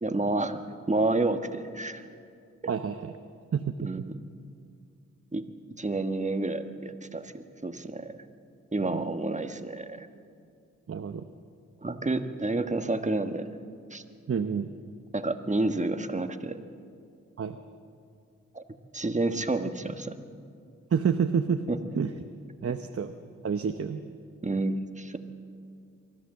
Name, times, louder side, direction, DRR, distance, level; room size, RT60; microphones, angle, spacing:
voice 1, 0.0-0.6 0.9-2.0 3.8-4.2 5.3-5.4 5.8-8.2 8.7-10.1 11.8-13.5 13.9-14.0 15.1-16.6 18.5-18.6 18.9-20.3 21.7-21.8 24.4-25.2, right 2 dB, 25° right, 8 dB, 1.3 m, -29 dB
voice 2, 2.7-3.1 3.5-3.9 8.9-9.0 10.9-11.2 14.3-14.7 17.4-17.6 20.9-21.6 22.0-22.1 22.6-23.1 23.4-24.0, right 6 dB, 50° right, 7 dB, 0.8 m, -28 dB
24.0 x 14.0 x 7.7 m, 2.3 s
cardioid pair, 60°, 30 cm